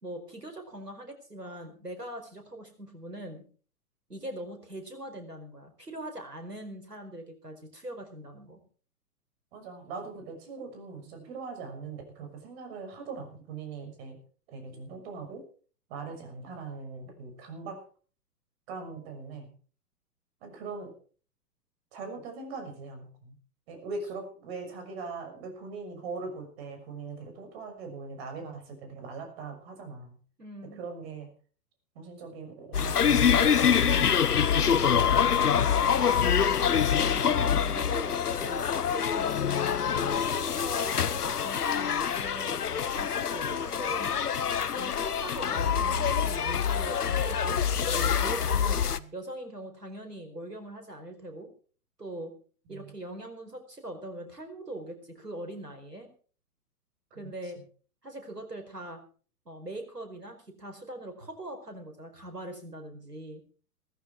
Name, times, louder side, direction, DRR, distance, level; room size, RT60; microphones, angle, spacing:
voice 1, 0.0-3.4 4.1-8.6 30.4-30.8 36.9-39.4 39.9-44.1 44.8-48.8 49.1-51.5 52.0-52.3 52.7-56.1 57.1-57.6 58.0-59.0 59.4-63.4, right 1 dB, 85° right, 6 dB, 4.9 m, -41 dB
voice 2, 9.5-14.2 14.5-15.4 15.9-17.8 18.7-19.5 20.4-20.9 21.9-23.4 23.7-30.2 30.6-31.3 31.9-34.1 35.4-36.2 48.9-49.1 52.7-52.9 57.2-57.3, right 4 dB, 40° right, 5 dB, 6.3 m, -41 dB
sound 1, 32.7-49.0, left 7 dB, 75° left, 1.0 m, -25 dB
17.0 x 14.5 x 4.7 m, 0.42 s
figure-of-eight pair, 115°, 46 cm